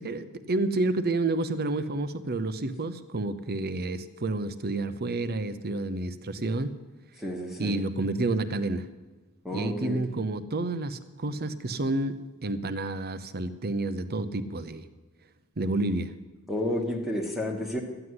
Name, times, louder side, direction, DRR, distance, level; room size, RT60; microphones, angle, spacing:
voice 1, 0.0-6.8 7.6-8.9 9.5-14.8 15.6-16.1, right 2 dB, 45° right, 12 dB, 0.8 m, -30 dB
voice 2, 7.2-7.8 9.4-10.2 16.5-17.8, left 1 dB, ahead, 0 dB, 1.2 m, -31 dB
14.0 x 7.9 x 9.6 m, 1.2 s
head